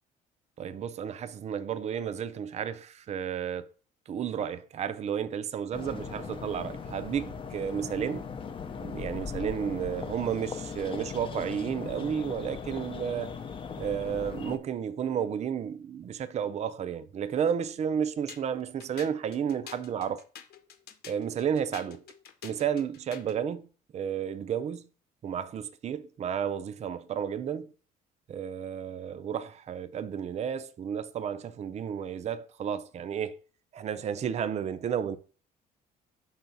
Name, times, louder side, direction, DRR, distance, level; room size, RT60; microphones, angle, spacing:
voice 1, 0.6-3.7 4.1-8.3 8.8-13.3 13.8-20.2 21.1-22.0 22.4-23.7 23.9-24.9 25.2-27.7 28.3-33.4 33.7-35.2, right 8 dB, 40° right, 0.5 m, -32 dB
sound 1, 5.7-14.6, left 6 dB, 30° left, 0.6 m, -39 dB
sound 2, 18.3-23.4, left 9 dB, 70° left, 1.0 m, -48 dB
5.6 x 4.0 x 5.7 m
cardioid pair, 110°, 17 cm